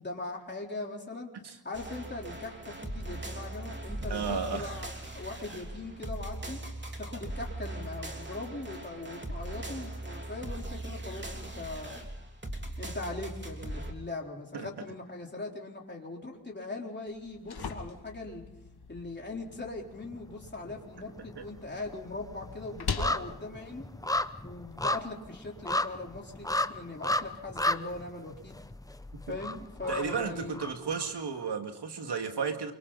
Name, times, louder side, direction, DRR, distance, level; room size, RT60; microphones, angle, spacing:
voice 1, 0.0-1.3 1.6-6.6 7.0-12.1 12.8-18.4 18.9-23.9 24.4-28.6 29.3-30.6, left 2 dB, 25° left, -1 dB, 4.0 m, -40 dB
sound 1, 1.7-13.9, right 1 dB, 25° right, 3.3 m, -39 dB
voice 2, 4.1-4.7 14.5-14.7 21.4-21.5 29.3-29.4 29.9-32.7, right 5 dB, 80° right, 5 dB, 2.3 m, -33 dB
sound 2, 17.1-25.0, left 5 dB, 70° left, 2.3 m, -42 dB
sound 3, 20.0-20.8 21.1-31.1 31.4-31.5, left 1 dB, 10° left, 0.8 m, -34 dB
29.5 x 23.5 x 4.2 m, 0.91 s
wide cardioid pair, 80°, 40 cm